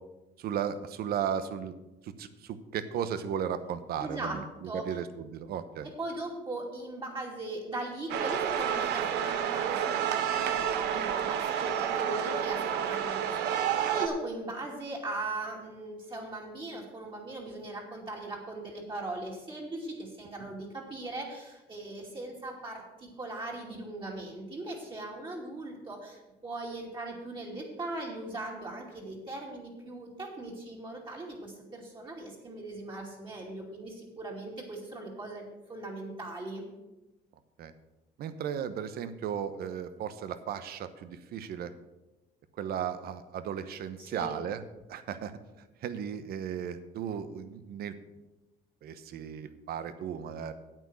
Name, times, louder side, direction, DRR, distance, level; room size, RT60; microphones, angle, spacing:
voice 1, 0.4-1.7 2.0-5.9 37.6-37.7 38.2-41.7 42.6-44.6 44.9-45.4 45.8-48.0 48.8-50.5, right 8 dB, 65° right, 12 dB, 1.0 m, -35 dB
voice 2, 4.0-4.8 6.0-36.7 44.0-44.4, right 2 dB, 30° right, -3 dB, 2.6 m, -39 dB
sound 1, 8.1-14.1, right 9 dB, 85° right, 0.9 m, -30 dB
9.1 x 8.3 x 6.3 m, 1.0 s
cardioid pair, 110°, 17 cm